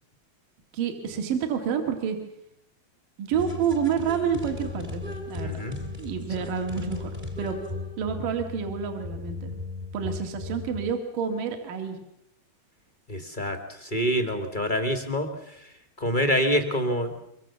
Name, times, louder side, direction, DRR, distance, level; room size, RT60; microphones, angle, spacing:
voice 1, 0.7-2.2 3.2-5.0 5.3-5.6 6.0-7.1 7.4-7.6 8.0-9.5 9.9-12.0, right 7 dB, 60° right, 4 dB, 3.7 m, -28 dB
sound 1, 3.3-10.9, left 3 dB, 15° right, 1.7 m, -36 dB
voice 2, 5.4-5.8 13.1-13.6 13.8-15.3 16.0-17.4, equal, 25° left, 5 dB, 1.0 m, -26 dB
24.5 x 24.0 x 7.1 m, 0.79 s
omnidirectional pair, 4.6 m